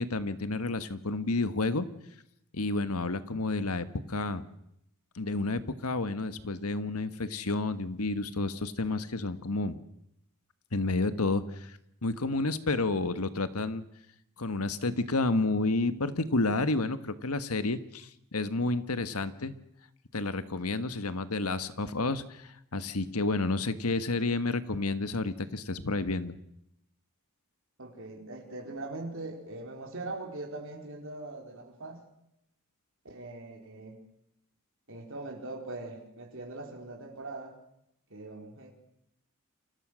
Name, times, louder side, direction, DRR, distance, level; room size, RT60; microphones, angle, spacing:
voice 1, 0.0-1.9 2.5-4.4 5.1-9.7 10.7-11.7 12.0-13.8 14.4-19.5 20.1-26.3, left 2 dB, 85° left, 12 dB, 1.5 m, -30 dB
voice 2, 27.8-32.1 33.0-34.0 34.9-37.6 38.1-38.7, right 2 dB, 60° right, 1 dB, 4.5 m, -41 dB
29.5 x 25.0 x 6.4 m, 0.80 s
head